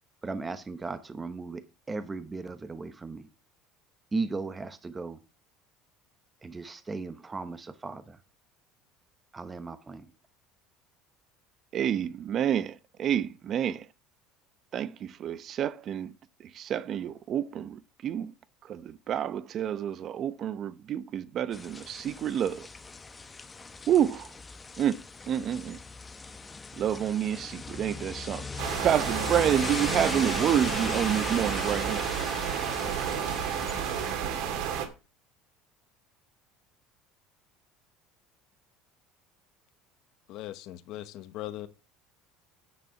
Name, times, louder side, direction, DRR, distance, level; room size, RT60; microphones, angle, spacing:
voice 1, 0.2-1.6 1.9-3.3 4.1-5.2 6.4-8.2 9.3-10.0, right 3 dB, 20° right, 1.0 m, -36 dB
voice 2, 11.7-13.9 14.7-16.1 16.4-18.3 18.6-22.7 23.9-24.3 24.8-25.8 26.8-32.1, right 10 dB, 45° right, 0.8 m, -29 dB
sound 1, 21.5-34.1, left 4 dB, 20° left, 0.9 m, -38 dB
sound 2, 28.6-34.9, right 8 dB, 70° right, 2.4 m, -31 dB
voice 3, 40.3-41.7, left 14 dB, 65° left, 1.0 m, -39 dB
9.4 x 6.8 x 5.8 m
supercardioid pair, 120°, 0 cm